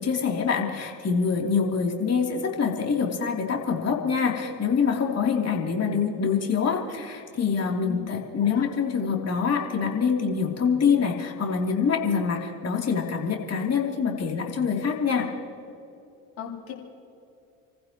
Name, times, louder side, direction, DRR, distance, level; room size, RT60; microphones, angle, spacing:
voice 1, 0.0-15.3, left 6 dB, 35° left, 0 dB, 3.2 m, -25 dB
voice 2, 16.4-16.7, left 10 dB, 80° left, -2 dB, 3.0 m, -35 dB
29.5 x 15.0 x 3.0 m, 2.7 s
hypercardioid pair, 60°, 42 cm